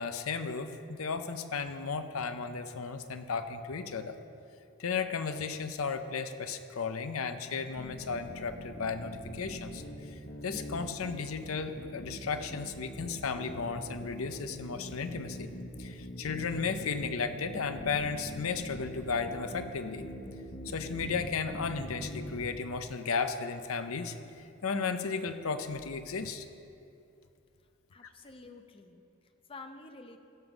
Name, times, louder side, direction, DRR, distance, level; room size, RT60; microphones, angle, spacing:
voice 1, 0.0-4.1 4.8-15.5 15.8-20.1 20.6-26.4, left 5 dB, 75° left, 9 dB, 0.7 m, -34 dB
sound 1, 7.8-22.5, equal, 45° left, 1.1 m, -43 dB
voice 2, 27.9-30.2, left 3 dB, 25° left, 6 dB, 0.6 m, -50 dB
15.0 x 5.6 x 6.0 m, 2.7 s
head